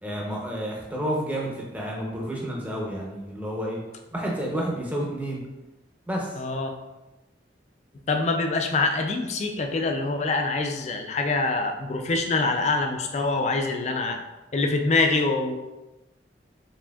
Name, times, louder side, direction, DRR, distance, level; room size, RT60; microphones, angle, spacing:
voice 1, 0.0-3.8 4.1-5.4 6.1-6.4, right 1 dB, 10° right, -3 dB, 0.7 m, -30 dB
voice 2, 6.4-6.7 8.1-14.2 14.5-15.6, left 3 dB, 35° left, 4 dB, 0.3 m, -25 dB
4.2 x 3.5 x 2.3 m, 1.0 s
head